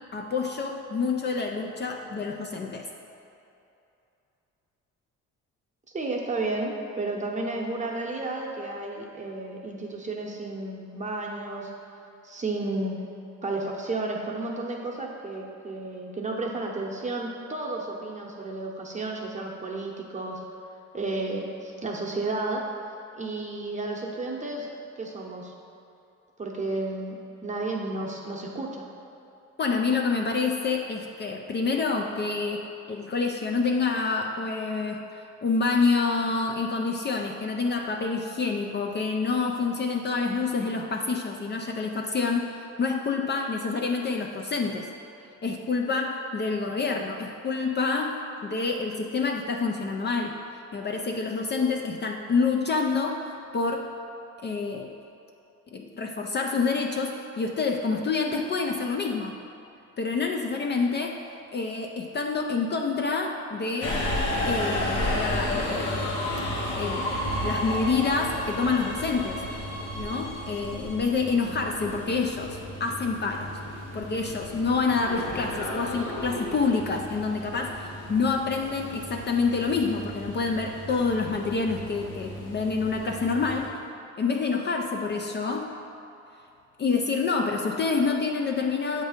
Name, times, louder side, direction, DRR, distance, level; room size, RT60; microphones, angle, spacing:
voice 1, 0.1-2.9 29.6-44.9 45.4-50.4 50.7-53.9 54.4-54.9 55.7-59.4 60.0-61.2 61.5-64.1 64.4-66.1 66.8-67.1 67.4-69.4 70.0-73.6 73.9-83.8 84.2-85.7 86.8-89.0, left 4 dB, 35° left, 2 dB, 0.4 m, -27 dB
voice 2, 5.9-11.7 12.2-13.0 13.4-20.4 20.9-22.6 23.1-24.7 25.0-25.5 26.4-27.1 27.4-28.9, right 2 dB, 25° right, -1 dB, 0.8 m, -32 dB
Subway metro underground, 63.8-83.7, left 1 dB, 85° left, 1.1 m, -33 dB
7.0 x 2.7 x 4.9 m, 2.8 s
cardioid pair, 90°, 30 cm